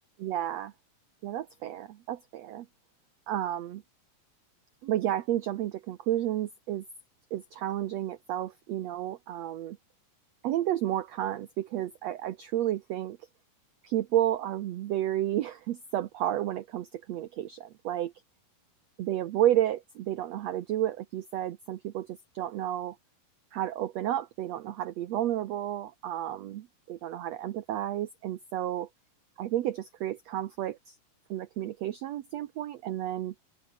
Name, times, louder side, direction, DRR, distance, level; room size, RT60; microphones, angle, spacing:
voice 1, 0.2-0.7 1.2-2.7 3.3-3.8 4.8-6.8 7.3-9.8 10.4-13.2 13.8-18.1 19.0-23.0 23.5-28.9 29.4-30.9 31.3-33.3, right 12 dB, 85° right, 1.5 m, -31 dB
open air
omnidirectional pair, 4.2 m